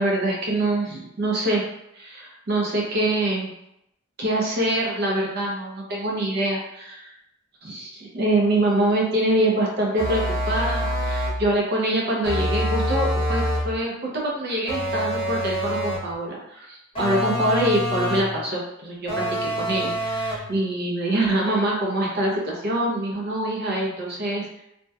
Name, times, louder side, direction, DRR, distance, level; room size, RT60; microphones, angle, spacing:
voice 1, 0.0-1.6 1.9-3.5 4.2-7.1 7.6-24.6, right 1 dB, 50° right, -2 dB, 0.5 m, -25 dB
sound 1, 10.0-11.5 12.2-13.8 14.7-16.1 17.0-18.4 19.1-20.5, equal, 25° left, 0.6 m, -26 dB
2.7 x 2.1 x 2.3 m, 0.81 s
head